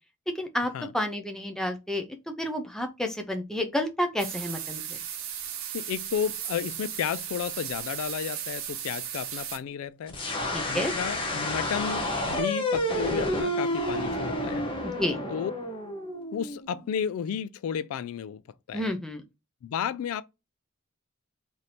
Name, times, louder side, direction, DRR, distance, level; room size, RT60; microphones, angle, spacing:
voice 1, 0.4-2.1 2.4-5.0 10.5-10.9 14.8-15.2 18.7-19.2, left 1 dB, 5° left, 0.5 m, -30 dB
sound 1, 4.2-9.6, right 9 dB, 75° right, 0.6 m, -36 dB
voice 2, 5.7-10.2 10.7-14.7 15.3-15.5 16.3-18.4 18.7-18.9 19.6-20.2, left 8 dB, 80° left, 0.3 m, -32 dB
sound 2, 10.1-16.9, left 1 dB, 25° left, 0.9 m, -30 dB
3.2 x 2.7 x 4.1 m
head